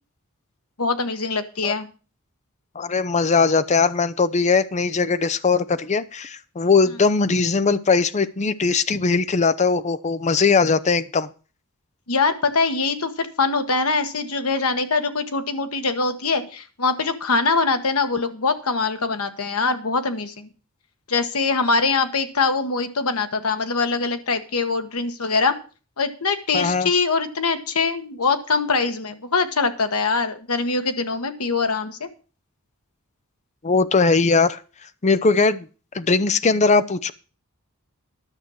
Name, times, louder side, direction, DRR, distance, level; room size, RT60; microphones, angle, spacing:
voice 1, 0.8-1.9 8.9-9.0 12.1-20.5 21.1-25.5 26.0-32.1, left 4 dB, 85° left, 8 dB, 1.3 m, -23 dB
voice 2, 2.8-11.3 26.5-26.9 33.6-34.6 35.0-35.7 35.9-37.1, left 4 dB, 30° left, 14 dB, 0.6 m, -20 dB
11.5 x 6.2 x 7.1 m, 0.36 s
head